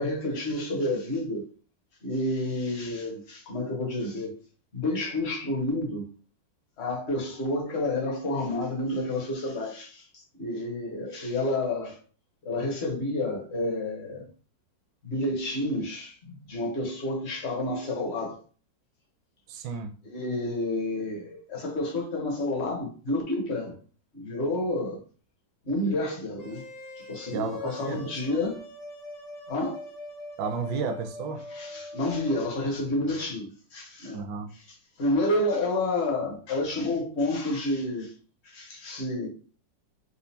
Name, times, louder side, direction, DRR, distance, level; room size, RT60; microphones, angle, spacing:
voice 1, 0.0-1.5 2.0-4.3 4.7-6.1 6.8-12.0 12.4-14.3 15.0-18.4 20.0-23.8 24.1-25.0 25.6-26.6 27.0-28.6 29.5-29.8 31.5-34.2 34.5-38.1 38.4-39.3, left 1 dB, 45° left, 1.0 m, -30 dB
voice 2, 19.5-19.9 27.3-28.0 28.3-28.4 30.4-31.4 34.1-34.5, right 6 dB, 75° right, 1.1 m, -32 dB
sound 1, 26.4-32.5, left 1 dB, 90° left, 0.5 m, -42 dB
4.3 x 2.4 x 2.7 m
omnidirectional pair, 2.0 m